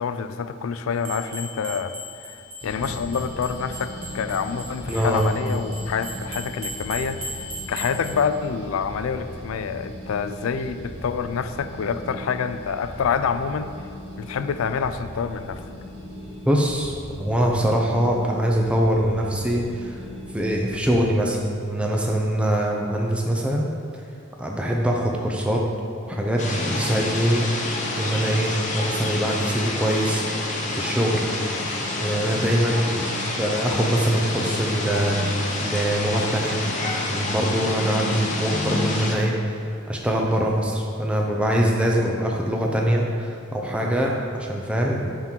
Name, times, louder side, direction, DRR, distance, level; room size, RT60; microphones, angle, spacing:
voice 1, 0.0-1.9 2.2-2.4 2.6-13.7 14.2-15.6, left 6 dB, 75° left, 11 dB, 0.4 m, -27 dB
sound 1, 1.0-8.2, equal, 80° right, 1.4 m, -38 dB
sound 2, 2.6-21.0, equal, 50° right, 1.7 m, -39 dB
voice 2, 4.9-5.3 16.4-20.0 20.3-23.7 24.4-25.6 26.0-27.6 28.0-30.2 30.7-31.3 32.0-33.1 33.4-36.7 37.0-45.2, equal, 5° right, -1 dB, 0.5 m, -23 dB
sound 3, 26.4-39.2, left 2 dB, 35° left, 0.8 m, -28 dB
9.5 x 3.8 x 4.4 m, 2.5 s
head